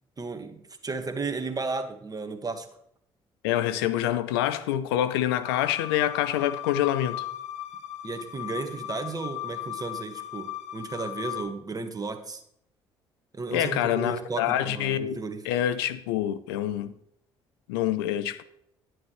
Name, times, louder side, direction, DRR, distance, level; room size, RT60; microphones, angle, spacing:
voice 1, 0.2-2.7 8.0-12.4 13.3-15.4, right 3 dB, 30° right, 1.5 m, -34 dB
voice 2, 3.4-7.2 13.5-15.2 15.4-16.9 17.7-18.4, left 12 dB, 85° left, 0.5 m, -26 dB
sound 1, 5.4-11.4, left 13 dB, 70° left, 1.0 m, -37 dB
11.0 x 9.5 x 3.1 m
hypercardioid pair, 55°, 12 cm